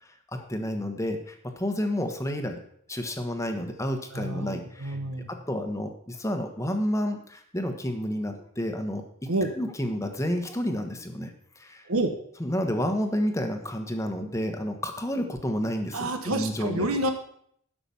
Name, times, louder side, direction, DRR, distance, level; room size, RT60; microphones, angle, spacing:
voice 1, 0.3-2.6 2.9-5.0 5.3-9.3 9.6-11.3 11.6-11.8 12.4-16.9, equal, 15° left, 5 dB, 1.2 m, -30 dB
voice 2, 4.1-5.3 9.3-9.5 11.9-12.1 15.9-17.1, right 2 dB, 75° right, 5 dB, 1.2 m, -28 dB
11.5 x 6.0 x 6.9 m, 0.66 s
head